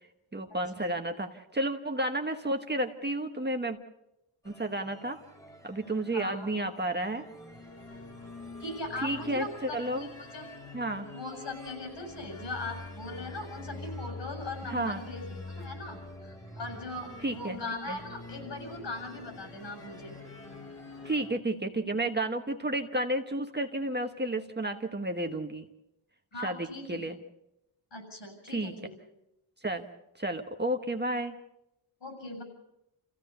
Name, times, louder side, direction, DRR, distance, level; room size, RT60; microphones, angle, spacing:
voice 1, 0.3-3.8 4.4-5.2 5.6-7.2 9.0-10.1 10.7-11.1 14.7-15.0 17.2-17.6 17.9-18.0 21.0-25.7 26.4-27.2 28.5-28.7 29.6-29.9 30.2-31.3, right 1 dB, 20° right, 4 dB, 1.3 m, -31 dB
sound 1, 4.4-21.4, right 1 dB, 5° left, 2.1 m, -52 dB
sound 2, 7.3-21.1, left 3 dB, 30° left, 1.0 m, -45 dB
voice 2, 8.6-10.4 11.1-20.2 26.3-27.0 27.9-28.9 32.0-32.4, left 2 dB, 60° left, 4 dB, 7.2 m, -40 dB
28.5 x 15.5 x 6.8 m, 0.87 s
wide cardioid pair, 105°, 47 cm